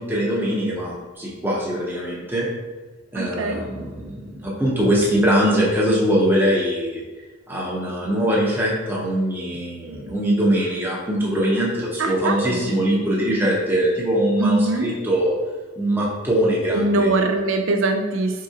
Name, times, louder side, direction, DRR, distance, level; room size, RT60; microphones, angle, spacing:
voice 1, 0.0-2.4 3.1-7.0 7.5-15.3 15.8-17.1, equal, 10° right, -5 dB, 0.7 m, -22 dB
voice 2, 3.1-3.6 12.0-12.7 14.4-14.9 16.7-18.4, right 2 dB, 65° right, 5 dB, 0.5 m, -22 dB
4.0 x 3.7 x 2.7 m, 1.3 s
head